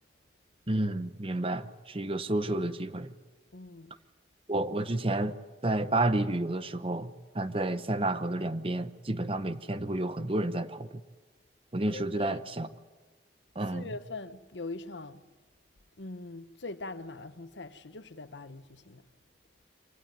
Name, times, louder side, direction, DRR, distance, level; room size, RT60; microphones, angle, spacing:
voice 1, 0.7-3.1 4.5-5.3 5.6-10.9 11.7-12.7 13.6-13.9, right 2 dB, 30° right, 0.8 m, -30 dB
voice 2, 3.5-3.9 11.9-12.4 13.7-15.2 16.0-19.0, left 3 dB, 80° left, 1.1 m, -42 dB
24.0 x 18.0 x 9.5 m
head